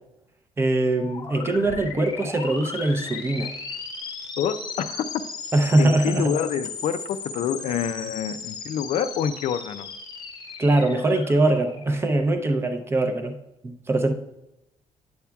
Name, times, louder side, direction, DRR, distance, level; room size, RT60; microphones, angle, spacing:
voice 1, 0.6-3.5 5.5-6.3 10.6-13.4 13.6-14.1, right 2 dB, 20° right, 6 dB, 0.5 m, -22 dB
sound 1, 0.9-12.6, left 4 dB, 35° left, 0.7 m, -36 dB
voice 2, 4.4-5.1 5.8-9.9, left 8 dB, 65° left, 11 dB, 0.4 m, -27 dB
9.3 x 7.0 x 2.3 m, 0.88 s
cardioid pair, 175°, 12 cm